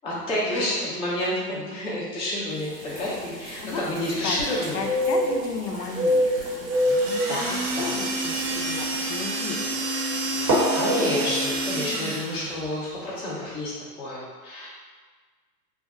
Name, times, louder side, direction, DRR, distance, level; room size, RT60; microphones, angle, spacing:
voice 1, 0.0-4.9 7.3-8.0 10.7-14.7, left 1 dB, 10° left, -8 dB, 0.5 m, -29 dB
sound 1, 2.6-9.2, left 1 dB, 85° right, 1.1 m, -28 dB
voice 2, 4.7-6.6 7.5-9.9 10.3-10.8, left 4 dB, 75° left, 3 dB, 0.6 m, -34 dB
sound 2, 6.5-7.8 8.6-8.7 10.4-13.6, right 1 dB, 25° right, 0.7 m, -29 dB
sound 3, 6.7-12.6, right 2 dB, 60° right, 0.7 m, -29 dB
2.5 x 2.1 x 3.5 m, 1.5 s
hypercardioid pair, 120°, 49 cm